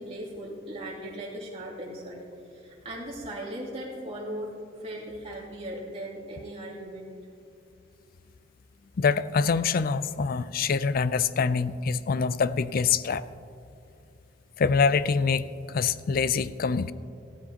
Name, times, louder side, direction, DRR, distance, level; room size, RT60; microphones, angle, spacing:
voice 1, 0.0-2.2 2.5-4.5 4.8-7.1, right 1 dB, 35° right, -4 dB, 2.6 m, -38 dB
voice 2, 9.0-13.2 14.6-16.9, left 5 dB, 50° left, 15 dB, 0.4 m, -25 dB
15.5 x 13.0 x 2.8 m, 2.6 s
head